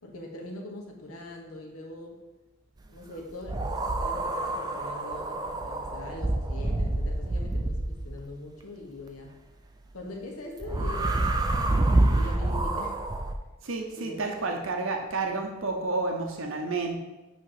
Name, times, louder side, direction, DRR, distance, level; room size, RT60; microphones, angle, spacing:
voice 1, 0.0-2.2 2.9-9.4 9.9-13.0 13.9-14.2, left 1 dB, 85° left, 1 dB, 1.2 m, -42 dB
sound 1, 3.5-8.2 10.6-13.3, right 2 dB, 20° right, 0.4 m, -27 dB
voice 2, 13.6-17.0, right 3 dB, 65° right, 3 dB, 0.7 m, -30 dB
8.5 x 3.0 x 4.7 m, 1.1 s
head